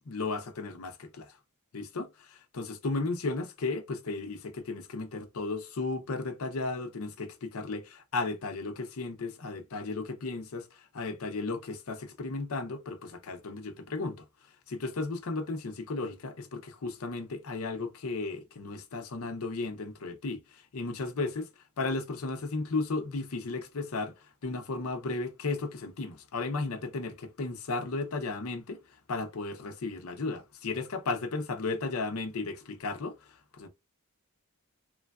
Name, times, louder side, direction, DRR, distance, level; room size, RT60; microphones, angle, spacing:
voice 1, 0.1-1.3 1.7-14.2 14.7-21.5 21.8-24.1 24.4-28.8 29.1-33.7, left 3 dB, 75° left, 0.6 m, -34 dB
3.2 x 2.2 x 2.3 m
head